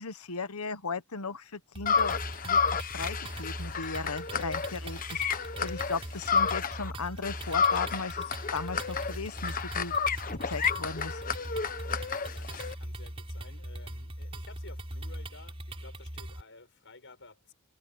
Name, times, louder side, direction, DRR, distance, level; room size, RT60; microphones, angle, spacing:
voice 1, 0.0-2.2 2.4-8.3 8.5-9.9 10.5-11.2, left 4 dB, 85° left, 1.3 m, -37 dB
sound 1, 1.8-16.4, right 1 dB, 25° right, 4.2 m, -40 dB
sound 2, 1.9-6.9 7.2-12.7, left 6 dB, 40° left, 1.2 m, -31 dB
voice 2, 12.3-17.5, left 3 dB, 60° left, 7.6 m, -53 dB
head